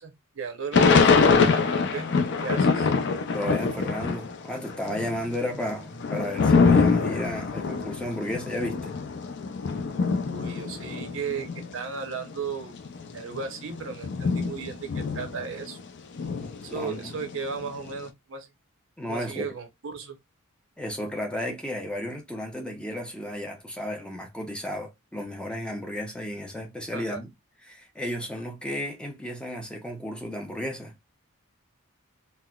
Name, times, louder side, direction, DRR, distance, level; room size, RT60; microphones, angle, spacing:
voice 1, 0.0-2.1 2.4-2.9 10.3-12.7 13.1-15.8 16.6-18.5 19.1-20.2 26.9-27.2, right 5 dB, 60° right, 0.7 m, -35 dB
Thunder / Rain, 0.7-4.4 4.7-11.7 12.3-12.4 12.6-15.8 16.2-17.9, left 4 dB, 55° left, 0.5 m, -24 dB
voice 2, 3.3-8.9 16.7-17.1 19.0-19.5 20.8-27.3 27.6-31.1, left 1 dB, 5° left, 0.5 m, -33 dB
4.1 x 2.1 x 2.2 m
head